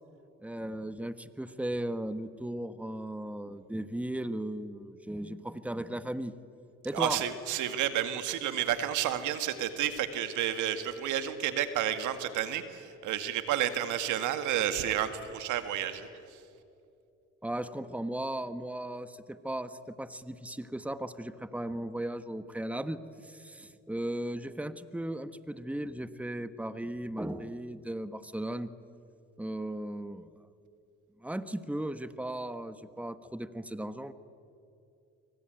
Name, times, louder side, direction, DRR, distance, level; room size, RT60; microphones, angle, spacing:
voice 1, 0.4-6.3 6.8-7.2 17.4-28.7 29.4-30.3 31.2-34.1, right 1 dB, 5° right, 11 dB, 1.4 m, -36 dB
voice 2, 6.9-16.1, right 10 dB, 85° right, 9 dB, 1.8 m, -31 dB
26.5 x 24.0 x 9.1 m, 2.6 s
supercardioid pair, 75°, 29 cm